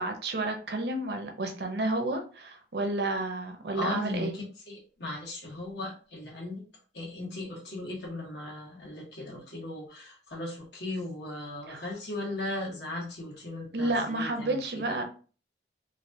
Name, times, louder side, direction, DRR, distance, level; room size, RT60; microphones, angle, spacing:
voice 1, 0.0-4.3 11.7-11.9 13.7-15.0, right 2 dB, 70° right, 4 dB, 0.6 m, -31 dB
voice 2, 3.7-6.6 6.9-15.0, left 2 dB, 70° left, -3 dB, 1.2 m, -37 dB
3.2 x 2.4 x 2.7 m, 0.38 s
head